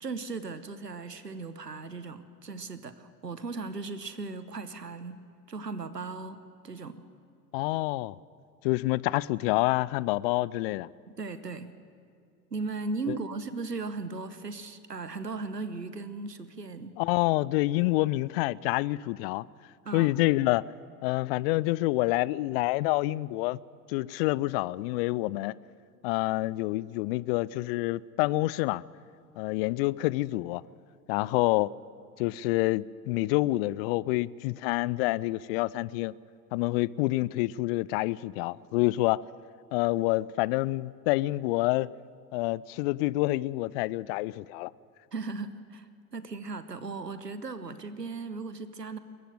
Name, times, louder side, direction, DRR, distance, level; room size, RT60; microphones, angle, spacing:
voice 1, 0.0-5.2 5.5-7.0 11.1-11.7 12.5-16.9 19.8-20.1 45.1-49.0, right 3 dB, 90° right, 1.0 m, -37 dB
voice 2, 7.5-8.2 8.6-10.9 13.1-13.2 17.0-19.5 19.9-20.7 21.0-23.6 23.9-25.6 26.0-28.8 29.4-30.6 31.1-31.7 32.2-36.2 36.5-39.2 39.7-41.9 42.3-44.7, left 19 dB, 40° left, 0.4 m, -27 dB
21.0 x 14.5 x 9.1 m
figure-of-eight pair, 75°, 47 cm